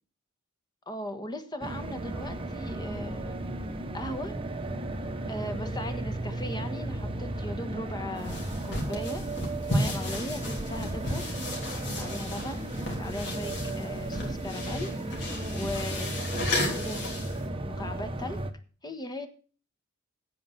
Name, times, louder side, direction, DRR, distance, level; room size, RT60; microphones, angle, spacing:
voice 1, 0.9-3.4 3.9-4.4 5.3-9.3 9.7-11.6 11.9-16.2 16.5-17.1 17.6-18.4 18.8-19.3, left 1 dB, 20° left, 7 dB, 1.3 m, -38 dB
sound 1, 1.6-18.5, right 1 dB, 25° right, 1.0 m, -35 dB
sound 2, 8.2-17.5, left 1 dB, 55° left, 3.5 m, -34 dB
9.6 x 8.5 x 5.8 m, 0.40 s
head